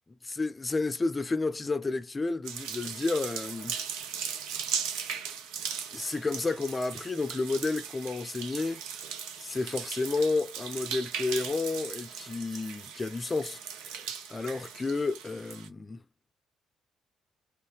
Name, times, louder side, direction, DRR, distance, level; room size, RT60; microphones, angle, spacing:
voice 1, 0.2-3.8 4.1-4.3 5.9-8.8 9.4-14.0 14.3-16.0, left 3 dB, 30° left, 0.5 m, -31 dB
sound 1, 2.4-15.7, right 7 dB, 80° right, 0.6 m, -38 dB
3.4 x 2.8 x 3.2 m
hypercardioid pair, 50°, 0 cm